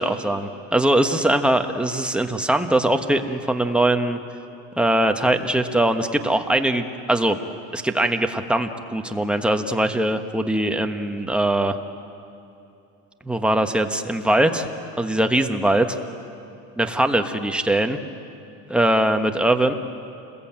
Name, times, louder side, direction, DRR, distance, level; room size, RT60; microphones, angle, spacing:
voice 1, 0.0-4.2 4.8-7.4 7.7-11.8 13.2-14.7 15.0-16.0 16.8-18.0 18.7-19.7, right 1 dB, 5° right, 5 dB, 1.3 m, -21 dB
28.5 x 21.0 x 8.9 m, 2.7 s
cardioid pair, 130°, 39 cm